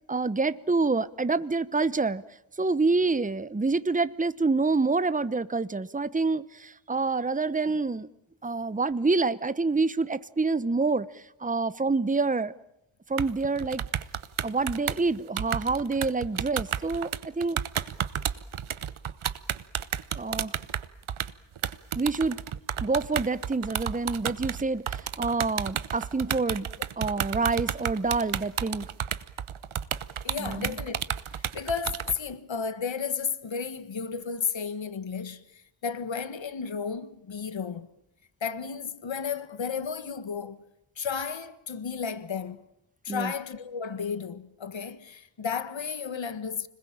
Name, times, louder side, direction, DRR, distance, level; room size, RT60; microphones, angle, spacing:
voice 1, 0.1-2.2 2.6-8.1 8.4-12.5 13.1-13.8 14.4-17.6 20.1-20.5 21.9-22.4 22.8-26.7 27.0-28.9 30.4-30.8 43.1-43.3, right 3 dB, 15° right, 0.9 m, -27 dB
sound 1, 13.2-32.2, right 9 dB, 80° right, 1.1 m, -32 dB
voice 2, 30.2-31.0 31.3-37.9 38.4-40.6 41.0-42.6 43.0-46.7, left 6 dB, 70° left, 1.6 m, -33 dB
26.0 x 21.0 x 8.8 m
cardioid pair, 55°, 48 cm